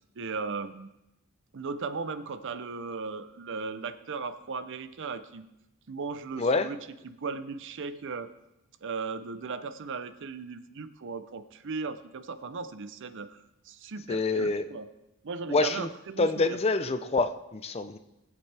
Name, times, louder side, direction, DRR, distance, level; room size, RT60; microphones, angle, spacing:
voice 1, 0.2-0.9 1.5-5.5 5.9-6.8 7.0-8.3 8.8-14.9 15.2-16.6, right 4 dB, 55° right, 12 dB, 0.6 m, -37 dB
voice 2, 14.1-14.6 15.5-15.9 16.2-18.0, left 3 dB, 25° left, 11 dB, 0.5 m, -26 dB
19.0 x 8.2 x 3.4 m, 0.92 s
head